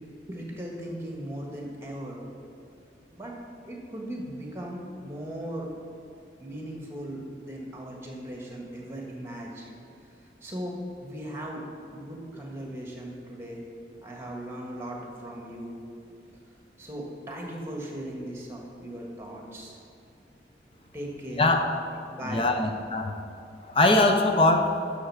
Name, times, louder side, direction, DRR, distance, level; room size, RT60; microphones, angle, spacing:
voice 1, 0.3-2.2 3.1-3.3 3.6-5.7 6.4-9.7 10.4-11.6 11.9-13.6 14.0-15.8 16.8-19.8 20.9-21.5 22.1-22.6, right 1 dB, 15° right, -1 dB, 1.5 m, -38 dB
voice 2, 21.4-21.8 22.2-23.2 23.7-24.8, left 2 dB, 30° left, 4 dB, 0.6 m, -22 dB
11.5 x 6.4 x 4.8 m, 2.6 s
head